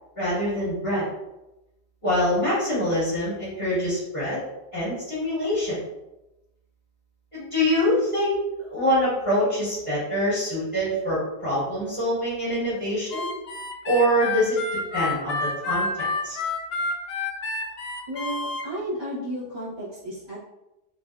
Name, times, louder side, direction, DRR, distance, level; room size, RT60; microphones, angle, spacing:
voice 1, 0.2-1.1 2.0-4.4 4.7-5.8 7.3-8.4 8.7-13.3 13.8-14.6 14.9-16.4, equal, 50° left, -12 dB, 1.8 m, -25 dB
Harmonica, 13.1-18.6, left 3 dB, 75° left, 0.8 m, -29 dB
voice 2, 18.1-20.4, equal, 55° right, -10 dB, 1.3 m, -33 dB
3.1 x 2.6 x 2.3 m, 0.97 s
omnidirectional pair, 1.1 m